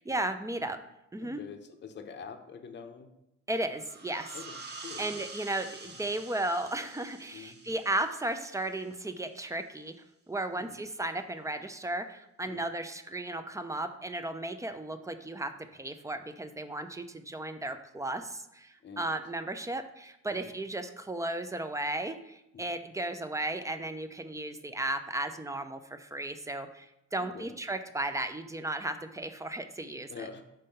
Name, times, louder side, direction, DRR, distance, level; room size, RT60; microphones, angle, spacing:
voice 1, 0.1-0.8 1.1-1.4 3.5-4.4 5.0-9.9 10.3-30.1, right 2 dB, 10° right, 9 dB, 0.5 m, -35 dB
voice 2, 1.2-3.1 4.3-5.0 5.8-6.0 7.3-7.6 10.6-10.8 12.4-12.6 18.8-19.1 20.3-20.5 22.5-22.6 27.2-27.5 30.1-30.4, left 6 dB, 35° left, 6 dB, 0.7 m, -46 dB
sound 1, 3.8-9.1, right 3 dB, 35° right, 1.0 m, -47 dB
5.4 x 3.5 x 5.6 m, 0.87 s
cardioid pair, 90°, 30 cm